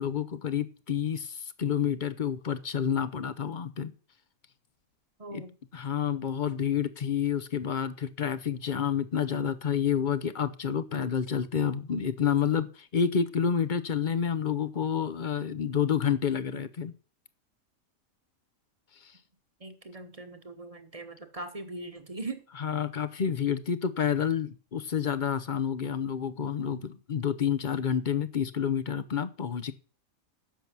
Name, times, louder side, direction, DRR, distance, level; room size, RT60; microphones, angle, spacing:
voice 1, 0.0-3.9 5.3-5.4 5.7-16.9 19.0-19.1 22.6-29.7, left 8 dB, 45° left, 0.7 m, -29 dB
voice 2, 5.2-5.5 19.6-22.4, right 2 dB, 25° right, 1.2 m, -40 dB
10.5 x 7.0 x 6.1 m
omnidirectional pair, 1.5 m